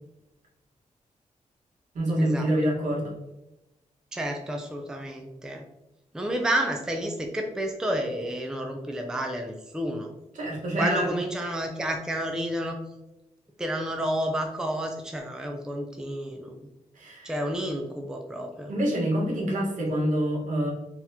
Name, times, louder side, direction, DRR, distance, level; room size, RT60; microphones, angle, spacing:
voice 1, 1.9-3.2 10.3-11.1 17.0-17.3 18.7-20.7, right 1 dB, 70° right, -3 dB, 1.3 m, -26 dB
voice 2, 4.1-5.6 6.1-10.1 10.8-12.8 13.6-16.6 17.2-18.7, right 1 dB, 5° right, 3 dB, 0.4 m, -30 dB
4.0 x 2.9 x 2.7 m, 0.95 s
wide cardioid pair, 140°, 13 cm